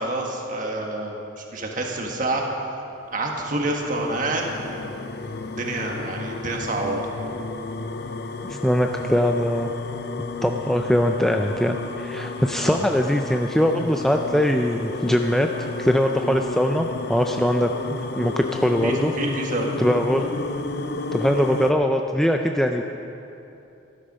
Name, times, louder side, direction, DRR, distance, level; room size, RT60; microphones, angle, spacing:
voice 1, 0.0-2.4 3.1-4.4 4.7-5.0 5.6-7.0 12.6-12.8 18.8-19.8, right 2 dB, 40° right, 0 dB, 1.6 m, -28 dB
sound 1, 3.0-21.7, left 3 dB, 55° left, 0.6 m, -32 dB
voice 2, 8.5-9.7 10.4-19.1 19.8-20.3 21.1-22.8, equal, ahead, 3 dB, 0.4 m, -22 dB
13.5 x 13.0 x 5.4 m, 2.8 s
head